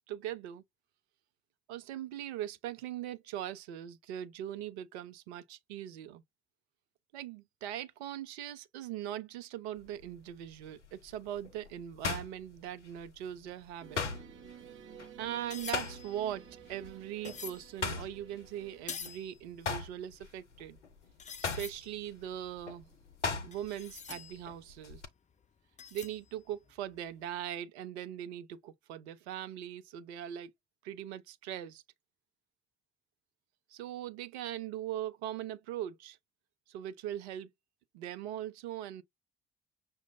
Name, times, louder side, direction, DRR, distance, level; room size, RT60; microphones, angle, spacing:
voice 1, 0.1-0.6 1.7-6.2 7.1-14.1 15.2-20.8 21.4-22.9 23.4-25.0 25.9-30.5 30.8-31.8 33.7-36.2 36.7-37.5 37.9-39.0, right 11 dB, 70° right, 0.6 m, -40 dB
sound 1, 9.8-10.1 10.7-13.2 13.4-16.4 16.7-16.9 17.2-19.2 19.5-23.9 24.1-25.1, left 4 dB, 90° left, 0.5 m, -38 dB
sound 2, 13.8-18.9, right 9 dB, 35° right, 0.8 m, -53 dB
sound 3, 15.3-17.7 18.3-19.4 19.6-19.7 20.4-20.5 20.7-20.8 21.2-21.9 22.5-24.9 25.8-26.4 26.7-27.0, left 6 dB, 20° left, 0.6 m, -46 dB
6.0 x 2.2 x 2.6 m
figure-of-eight pair, 50°, 35 cm